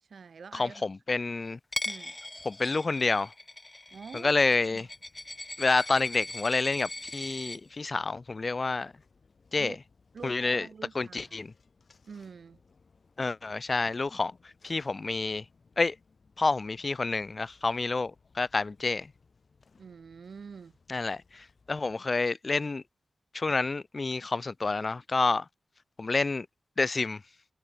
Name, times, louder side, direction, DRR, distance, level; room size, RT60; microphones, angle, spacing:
voice 1, 0.0-0.8 1.8-2.2 3.9-4.3 4.7-4.9 9.6-9.8 10.1-11.4 12.0-12.6 19.8-20.8, right 5 dB, 75° right, 3.1 m, -46 dB
voice 2, 0.5-1.6 2.5-3.3 4.1-4.9 5.6-8.9 9.5-9.7 10.2-10.7 10.9-11.5 13.2-14.3 14.6-15.4 15.8-15.9 16.4-19.1 20.9-22.8 23.3-25.4 26.0-26.5 26.8-27.2, left 3 dB, 45° left, 0.6 m, -28 dB
Coin (dropping), 1.7-7.6, left 2 dB, 25° left, 1.6 m, -40 dB
Building site, 3.9-22.0, left 4 dB, 60° left, 6.5 m, -64 dB
cardioid pair, 65°, 0 cm